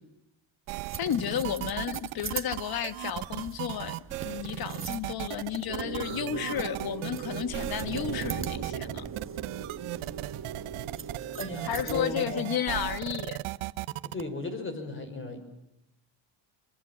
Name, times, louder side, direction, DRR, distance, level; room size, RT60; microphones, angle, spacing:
sound 1, 0.7-14.2, right 18 dB, 85° right, 1.0 m, -37 dB
sound 2, 0.8-12.2, right 6 dB, 25° right, 1.6 m, -45 dB
voice 1, 1.0-9.1 11.6-13.4, left 10 dB, 50° left, 1.4 m, -32 dB
sound 3, 5.7-12.4, right 7 dB, 50° right, 2.7 m, -39 dB
voice 2, 11.4-12.5 14.0-15.4, left 2 dB, 25° left, 5.7 m, -36 dB
28.0 x 23.5 x 7.3 m
cardioid pair, 130°, 48 cm